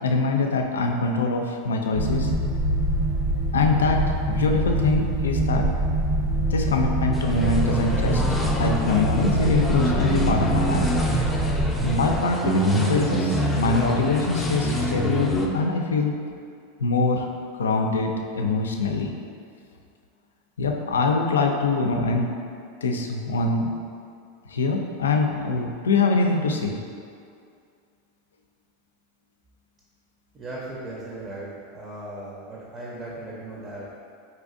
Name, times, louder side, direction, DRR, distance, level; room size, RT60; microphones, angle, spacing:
voice 1, 0.0-2.3 3.5-5.7 6.5-8.2 8.5-11.1 11.8-16.1 16.8-17.3 17.6-19.1 20.6-22.3 22.8-23.7 24.5-26.8, left 3 dB, 90° left, 3 dB, 0.3 m, -24 dB
sound 1, 1.9-12.2, right 1 dB, 80° right, 0.8 m, -24 dB
sound 2, 7.1-15.5, equal, 10° left, 0.4 m, -26 dB
voice 2, 30.3-34.0, right 2 dB, 30° right, -5 dB, 0.6 m, -37 dB
4.1 x 2.5 x 2.5 m, 2.3 s
hypercardioid pair, 100°, 0 cm